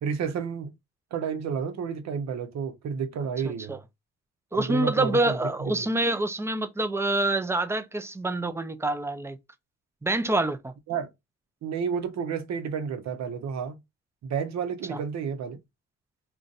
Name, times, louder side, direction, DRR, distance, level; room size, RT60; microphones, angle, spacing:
voice 1, 0.0-0.7 1.1-3.8 4.5-5.9 10.9-11.1 11.6-13.8 14.2-15.6, right 6 dB, 60° right, 0.8 m, -31 dB
voice 2, 3.4-3.8 4.5-9.4 10.0-10.7 14.9-15.0, right 2 dB, 10° right, 0.4 m, -26 dB
2.5 x 2.3 x 3.8 m
cardioid pair, 90°, 30 cm